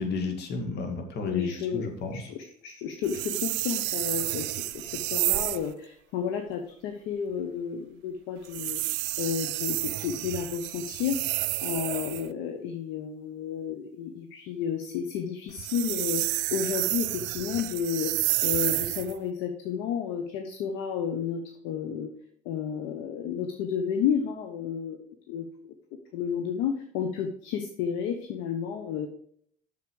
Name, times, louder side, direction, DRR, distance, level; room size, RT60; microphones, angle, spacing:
voice 1, 0.0-2.1, left 4 dB, 60° left, 4 dB, 2.2 m, -32 dB
voice 2, 1.3-1.9 2.1-8.8 9.2-11.2 11.6-22.1 22.4-25.0 25.3-25.7 26.1-29.1, left 7 dB, 75° left, 5 dB, 1.0 m, -32 dB
sound 1, 3.0-5.7 8.4-12.3 15.5-19.2, right 19 dB, 70° right, 0.4 m, -30 dB
8.4 x 6.6 x 4.8 m, 0.63 s
supercardioid pair, 70°, 19 cm